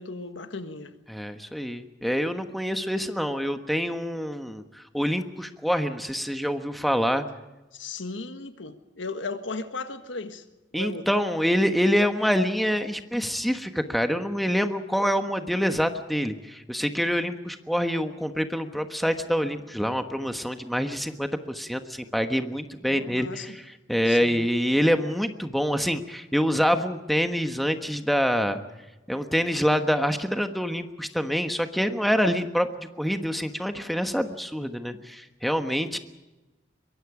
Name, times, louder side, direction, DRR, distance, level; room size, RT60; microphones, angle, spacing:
voice 1, 0.0-0.9 7.7-10.4 10.7-11.1 22.9-23.6 24.1-24.5, left 3 dB, 90° left, 1.6 m, -36 dB
voice 2, 1.1-7.2 10.7-23.6 23.9-28.6 29.1-36.0, equal, ahead, 1.3 m, -26 dB
23.5 x 23.0 x 5.0 m
head